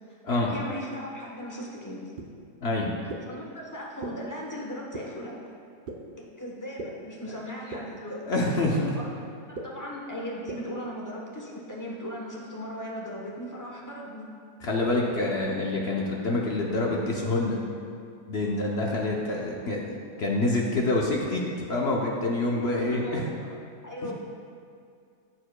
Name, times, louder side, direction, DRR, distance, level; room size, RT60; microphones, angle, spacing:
voice 1, 0.1-2.0 3.3-5.3 6.2-8.2 8.9-9.0 9.5-14.3 22.4-23.5 23.8-24.1, equal, 15° left, -3 dB, 0.8 m, -38 dB
sound 1, 2.2-2.3 3.1-3.2 4.0-4.1 4.9-5.0 5.9-6.0 6.8-6.9 7.7-7.8 8.6-8.7 9.5-9.6 10.5-10.6, right 3 dB, 60° right, 0.5 m, -35 dB
voice 2, 2.6-2.9 8.3-9.0 14.6-17.6 18.3-21.4 21.7-23.2, left 2 dB, 55° left, -2 dB, 0.8 m, -26 dB
14.5 x 4.8 x 2.2 m, 2.4 s
omnidirectional pair, 1.7 m